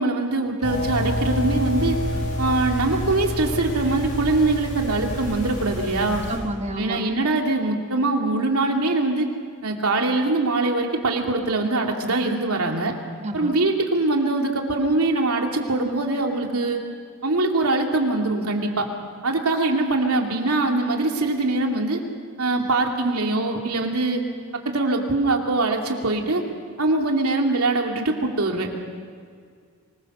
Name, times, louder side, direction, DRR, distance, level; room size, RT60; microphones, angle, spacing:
voice 1, 0.0-2.0 2.4-6.2 6.8-9.3 9.6-12.9 13.3-16.8 17.2-18.9 19.2-22.0 22.4-24.2 24.6-26.4 26.8-28.7, right 2 dB, 80° right, 1 dB, 2.7 m, -23 dB
sound 1, 0.6-6.4, left 1 dB, 60° left, 8.0 m, -28 dB
voice 2, 6.3-7.0 13.2-13.5 22.6-22.7, right 1 dB, 30° right, 5 dB, 1.5 m, -30 dB
24.5 x 21.0 x 6.7 m, 2.1 s
head